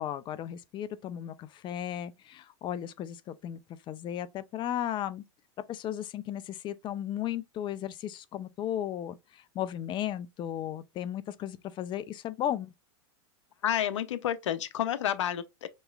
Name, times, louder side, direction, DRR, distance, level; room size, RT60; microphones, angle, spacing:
voice 1, 0.0-3.6 3.9-5.2 5.7-12.7, left 11 dB, 30° left, 0.5 m, -35 dB
voice 2, 13.6-15.7, left 10 dB, 90° left, 0.7 m, -30 dB
5.3 x 2.9 x 2.4 m
supercardioid pair, 120°, 15 cm